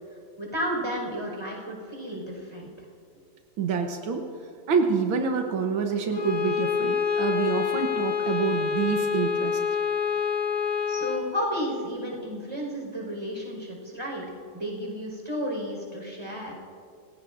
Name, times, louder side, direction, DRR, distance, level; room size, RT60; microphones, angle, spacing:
voice 1, 0.4-2.7 10.9-14.2 14.5-16.5, equal, 15° right, -2 dB, 4.9 m, -32 dB
voice 2, 3.6-4.2 4.7-9.6, right 5 dB, 80° right, 4 dB, 1.8 m, -27 dB
Bowed string instrument, 6.1-11.3, left 6 dB, 50° left, 1.6 m, -27 dB
29.0 x 17.5 x 2.6 m, 2.4 s
omnidirectional pair, 2.1 m